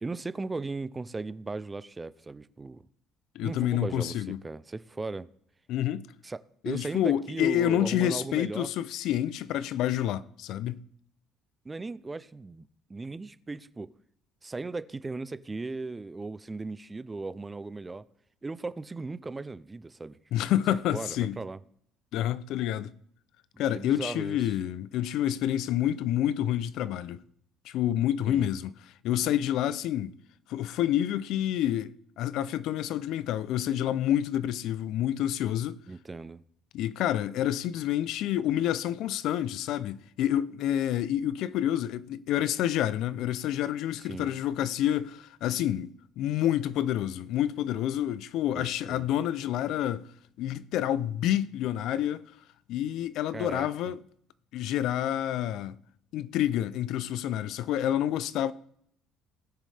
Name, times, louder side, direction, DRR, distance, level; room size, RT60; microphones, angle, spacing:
voice 1, 0.0-2.8 3.4-5.3 6.2-8.7 11.6-13.9 14.4-18.0 18.4-20.2 20.9-21.6 23.7-24.5 28.3-28.5 35.9-36.4 44.0-44.3 48.5-49.1 53.3-53.7, right 3 dB, 15° right, 0.4 m, -37 dB
voice 2, 3.4-4.4 5.7-6.1 6.6-10.8 20.3-21.4 22.1-22.9 23.6-27.2 27.7-28.7 29.0-30.1 30.5-35.8 36.7-50.1 50.4-52.2 52.7-54.0 54.5-55.7 56.1-58.5, left 11 dB, 70° left, 0.4 m, -28 dB
18.5 x 6.4 x 3.3 m
cardioid pair, 125°, 0 cm